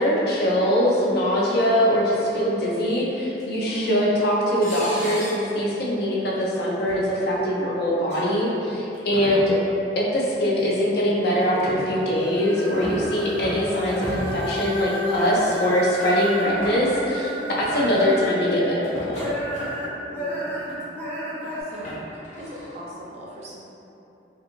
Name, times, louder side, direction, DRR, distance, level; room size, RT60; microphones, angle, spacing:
voice 1, 0.0-9.6 10.0-19.5, equal, 65° left, -4 dB, 0.5 m, -22 dB
sound 1, 3.4-3.5 4.6-5.5 6.3-6.5 6.9-7.0 8.0-8.3 8.9-9.4 10.6-10.7 11.4-11.9 12.5-13.0 13.4-13.7 14.0-14.5 15.2-15.7 16.0-16.1 16.4-17.1 17.5-18.0 18.8-19.9 20.5-20.8 21.4-22.7, equal, 40° left, 0.9 m, -36 dB
voice 2, 3.6-4.0 9.1-9.6 12.8-13.2 20.0-20.8 21.2-21.9 22.4-23.6, right 1 dB, 40° right, -5 dB, 0.5 m, -37 dB
sound 2, 11.2-18.6 19.1-21.6, equal, 10° left, 0.5 m, -32 dB
2.4 x 2.4 x 2.9 m, 2.9 s
head